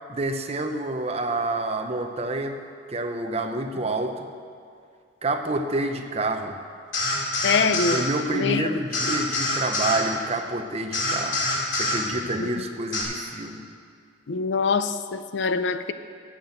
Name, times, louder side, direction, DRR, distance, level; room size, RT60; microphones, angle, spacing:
voice 1, 0.1-2.6 2.9-4.3 5.2-6.6 7.9-11.4 11.7-13.6, right 2 dB, 35° right, 5 dB, 0.7 m, -28 dB
sound 1, 6.9-8.0 8.9-10.0 10.9-12.0 12.9-13.0, left 2 dB, 85° left, 2.3 m, -25 dB
voice 2, 7.4-8.7 9.1-9.2 12.4-12.6 14.3-15.9, left 5 dB, 65° left, 12 dB, 0.5 m, -25 dB
11.0 x 6.0 x 7.8 m, 2.3 s
head